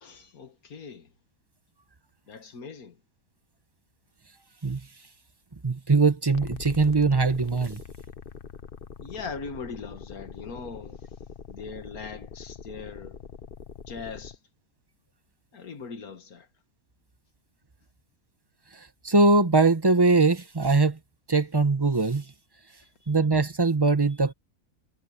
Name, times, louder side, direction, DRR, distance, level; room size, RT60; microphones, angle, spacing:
voice 1, 0.0-1.1 2.3-3.0 9.0-11.0 11.5-13.2 13.9-14.4 15.5-16.5, left 5 dB, 80° left, 2.2 m, -40 dB
voice 2, 5.6-7.8 19.0-21.0 21.3-22.3 23.1-24.3, right 3 dB, 20° right, 0.9 m, -21 dB
sound 1, 6.3-14.4, left 6 dB, 45° left, 0.9 m, -43 dB
omnidirectional pair, 1.5 m